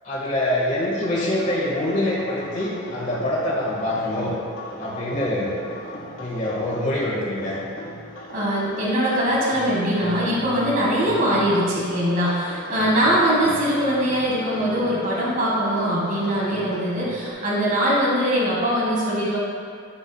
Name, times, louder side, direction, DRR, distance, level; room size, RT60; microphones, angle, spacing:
voice 1, 0.0-4.4 4.8-5.6 6.1-7.6 13.4-13.5, left 1 dB, 35° left, -6 dB, 1.5 m, -25 dB
sound 1, 0.7-17.3, left 1 dB, 80° left, 1.3 m, -37 dB
voice 2, 8.3-19.4, equal, 40° right, -5 dB, 1.7 m, -22 dB
10.0 x 6.3 x 2.3 m, 2.4 s
head